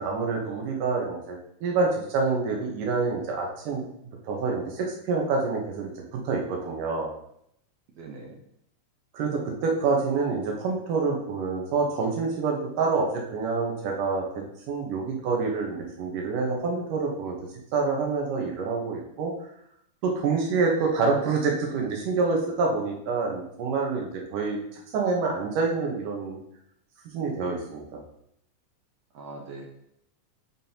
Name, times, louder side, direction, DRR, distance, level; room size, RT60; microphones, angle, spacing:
voice 1, 0.0-3.8 4.3-7.1 9.1-17.4 17.7-19.3 20.0-24.6 24.9-26.4 27.1-28.0, right 4 dB, 85° right, 0 dB, 2.8 m, -27 dB
voice 2, 7.9-8.4 27.4-27.6 29.1-29.7, right 3 dB, 65° right, 0 dB, 2.0 m, -42 dB
9.1 x 6.1 x 2.9 m, 0.74 s
omnidirectional pair, 3.6 m